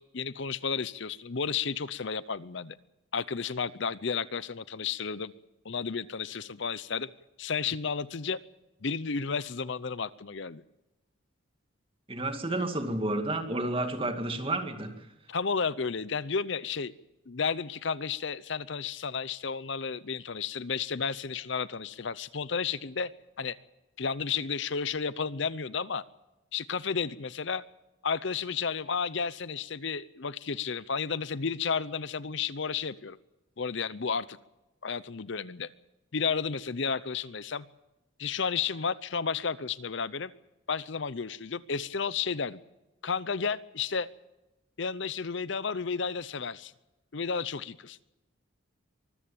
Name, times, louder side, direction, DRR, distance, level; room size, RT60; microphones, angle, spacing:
voice 1, 0.0-2.8 3.1-5.3 5.6-7.1 7.4-8.4 8.8-10.6 15.3-16.9 17.3-23.1 23.4-23.6 24.0-26.0 26.5-27.6 28.0-33.2 33.6-34.4 34.8-35.7 36.1-37.7 38.2-40.3 40.7-42.6 43.0-44.1 44.8-46.7 47.1-48.0, left 5 dB, 60° left, 17 dB, 0.7 m, -32 dB
voice 2, 12.1-14.9, right 2 dB, 25° right, 6 dB, 2.3 m, -31 dB
24.0 x 14.5 x 8.8 m, 0.96 s
head